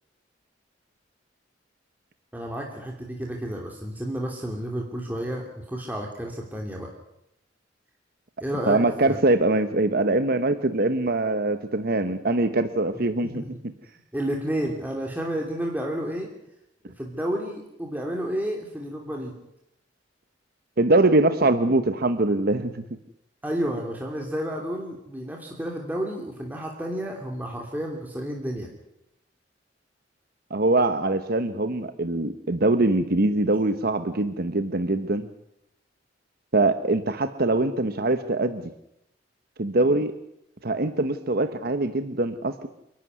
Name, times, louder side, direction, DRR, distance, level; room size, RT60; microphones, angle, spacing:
voice 1, 2.3-6.9 8.4-8.8 9.1-9.2 13.2-13.5 14.1-16.3 17.0-19.3 23.4-28.7, equal, 10° right, 0 dB, 2.9 m, -31 dB
voice 2, 8.7-13.4 20.8-22.8 30.5-35.3 36.5-38.7 39.6-40.1 40.6-42.7, right 2 dB, 55° right, 10 dB, 1.2 m, -23 dB
28.5 x 12.0 x 9.5 m, 0.83 s
head